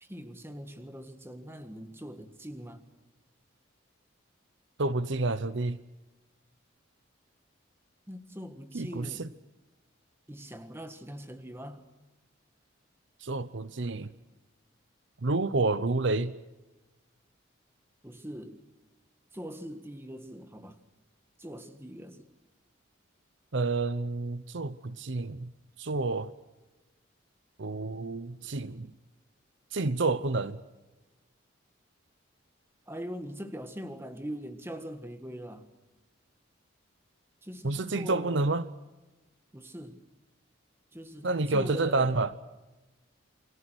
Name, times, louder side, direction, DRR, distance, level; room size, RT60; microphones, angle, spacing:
voice 1, 0.0-2.9 8.1-9.3 10.3-11.9 18.0-18.6 19.3-20.8 21.4-22.3 32.9-35.7 37.4-38.5 39.5-40.0 40.9-42.2, equal, 10° right, 1.6 m, -42 dB
voice 2, 4.8-5.8 8.7-9.3 13.2-14.1 15.2-16.3 23.5-25.5 25.8-26.3 27.6-28.9 29.7-30.6 37.6-38.7 41.2-42.3, right 3 dB, 65° right, 0.8 m, -29 dB
29.0 x 22.0 x 6.3 m
head